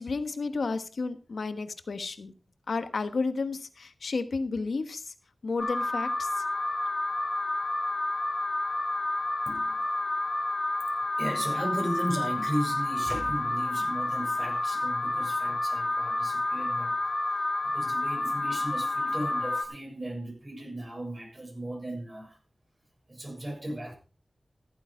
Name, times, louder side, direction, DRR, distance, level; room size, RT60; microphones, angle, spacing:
voice 1, 0.0-2.3 2.7-5.1 5.4-6.4, left 4 dB, 90° left, 1.2 m, -32 dB
Alarm, 5.6-19.7, left 2 dB, 45° left, 2.2 m, -30 dB
voice 2, 9.5-9.9 11.2-17.0 17.6-22.4 23.1-23.9, right 1 dB, 40° right, 7.0 m, -36 dB
14.5 x 9.0 x 4.8 m
cardioid pair, 50°, 0 cm